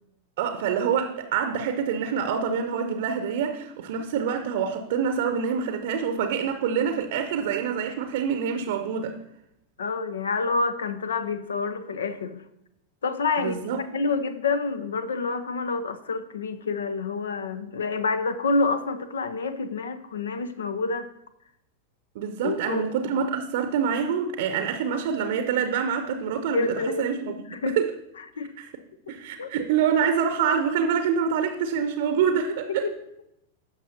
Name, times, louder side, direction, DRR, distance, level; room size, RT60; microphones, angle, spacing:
voice 1, 0.4-9.2 13.4-13.8 22.1-27.9 28.6-28.7 29.1-32.9, right 7 dB, 55° right, 0.7 m, -26 dB
voice 2, 9.8-12.4 13.0-21.1 22.4-22.9 26.5-27.8 28.4-28.5 29.1-29.2 29.4-29.5 32.7-32.9, left 3 dB, 65° left, 0.6 m, -28 dB
16.0 x 6.2 x 2.8 m
figure-of-eight pair, 90°, 0 cm